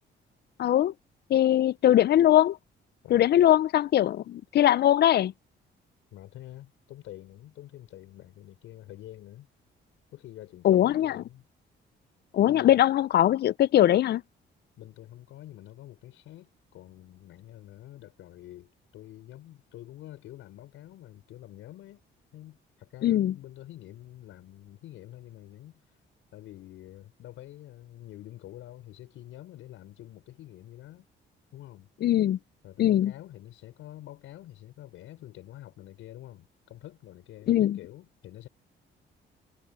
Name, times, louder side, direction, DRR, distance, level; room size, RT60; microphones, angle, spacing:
voice 1, 0.6-0.9 1.3-2.6 3.1-5.3 10.6-11.1 12.3-14.2 23.0-23.3 32.0-32.4 32.8-33.1 37.5-37.8, left 12 dB, 55° left, 0.5 m, -21 dB
voice 2, 6.1-9.5 10.1-11.5 12.5-12.8 14.8-22.0 22.3-26.0 26.3-31.1 31.5-31.9 32.6-38.5, left 14 dB, 85° left, 5.7 m, -47 dB
cardioid pair, 90°, 20 cm